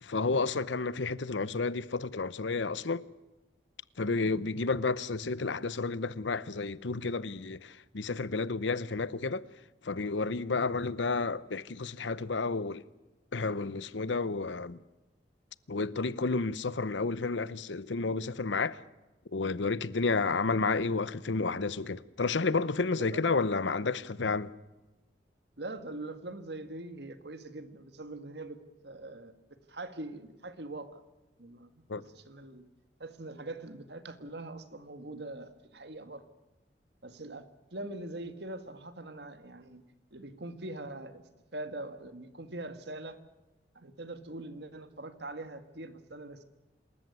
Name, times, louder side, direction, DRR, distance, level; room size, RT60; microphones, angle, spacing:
voice 1, 0.0-3.0 4.0-9.5 9.8-12.8 13.3-14.8 15.7-18.8 19.3-24.5 31.9-32.0, left 4 dB, 85° left, 0.8 m, -31 dB
voice 2, 22.9-23.2 25.6-29.3 29.7-31.0 31.4-32.7 33.0-36.2 37.0-39.8 40.1-41.2 41.5-43.2 43.8-46.4, right 2 dB, 65° right, 1.8 m, -43 dB
27.0 x 14.0 x 9.5 m
head